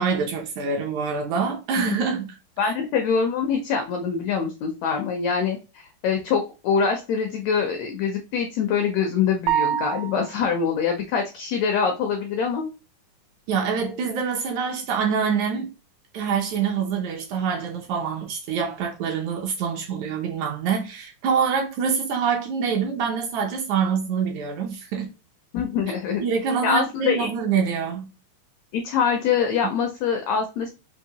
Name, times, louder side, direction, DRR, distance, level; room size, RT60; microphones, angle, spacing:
voice 1, 0.0-2.4 2.6-2.7 13.5-15.7 16.1-25.1 26.2-28.1, right 6 dB, 75° right, 1.9 m, -25 dB
voice 2, 2.6-12.7 25.5-26.2 26.6-27.3 28.7-30.7, left 6 dB, 85° left, 1.5 m, -24 dB
sound 1, 9.5-10.5, right 10 dB, 90° right, 2.2 m, -25 dB
5.5 x 2.6 x 2.8 m
omnidirectional pair, 3.8 m